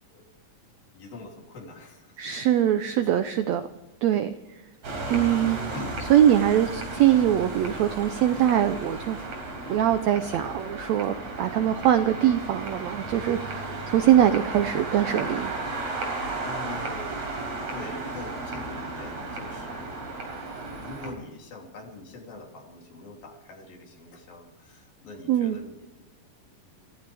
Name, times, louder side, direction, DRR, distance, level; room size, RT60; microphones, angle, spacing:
voice 1, 0.9-2.2 3.0-3.1 5.6-6.0 16.4-20.0 20.8-25.9 26.4-26.5 26.8-26.9, left 2 dB, 80° left, 0 dB, 4.9 m, -43 dB
voice 2, 2.2-3.7 4.0-4.3 5.1-5.6 6.1-9.2 9.7-15.5 25.3-25.6, right 11 dB, 80° right, 10 dB, 1.5 m, -22 dB
sound 1, 4.8-21.1, right 2 dB, 50° right, 5.1 m, -34 dB
27.0 x 14.5 x 3.5 m, 1.1 s
omnidirectional pair, 4.0 m